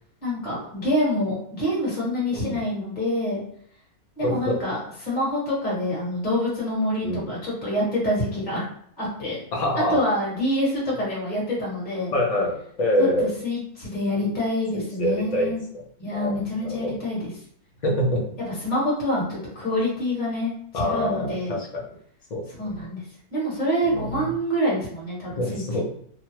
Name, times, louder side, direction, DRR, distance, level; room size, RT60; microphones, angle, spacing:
voice 1, 0.2-3.4 4.2-4.8 5.0-8.7 9.0-9.4 9.9-12.1 13.0-13.1 13.4-15.6 16.0-17.3 18.6-21.6 22.6-23.0 23.3-25.6, left 1 dB, 30° left, -6 dB, 1.4 m, -26 dB
voice 2, 2.3-2.6 4.2-4.6 7.0-7.3 9.5-10.0 12.1-13.3 14.7-15.8 16.1-17.0 17.8-18.2 20.7-21.8 22.3-22.8 23.8-24.3 25.3-25.8, left 1 dB, 50° left, -1 dB, 0.5 m, -26 dB
2.9 x 2.2 x 3.0 m, 0.63 s
omnidirectional pair, 1.6 m